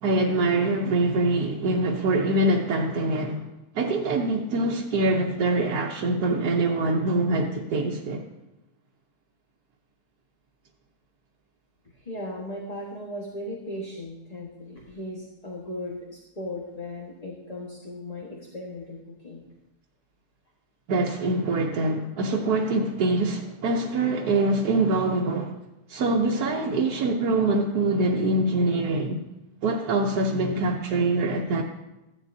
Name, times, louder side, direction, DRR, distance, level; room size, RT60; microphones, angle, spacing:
voice 1, 0.0-3.5 3.7-8.2 20.9-25.5 25.9-29.2 29.6-31.6, right 2 dB, 80° right, 1.4 m, -24 dB
voice 2, 11.9-19.4 26.2-26.6, left 1 dB, 25° left, 1.4 m, -37 dB
15.0 x 11.0 x 2.7 m
omnidirectional pair, 1.6 m